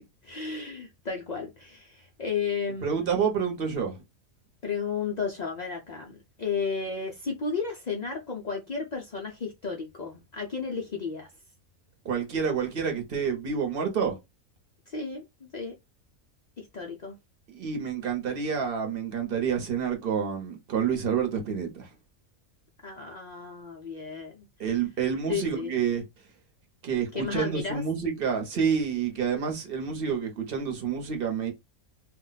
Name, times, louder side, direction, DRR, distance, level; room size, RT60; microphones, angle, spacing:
voice 1, 0.2-3.1 4.6-11.3 14.9-15.2 15.5-15.7 16.6-17.2 22.8-24.5 25.3-25.7 27.1-27.8, left 5 dB, 70° left, 0.4 m, -33 dB
voice 2, 2.8-4.0 12.0-14.2 17.5-21.9 24.6-26.0 26.8-31.5, right 7 dB, 45° right, 1.0 m, -28 dB
2.5 x 2.1 x 3.9 m
omnidirectional pair, 1.4 m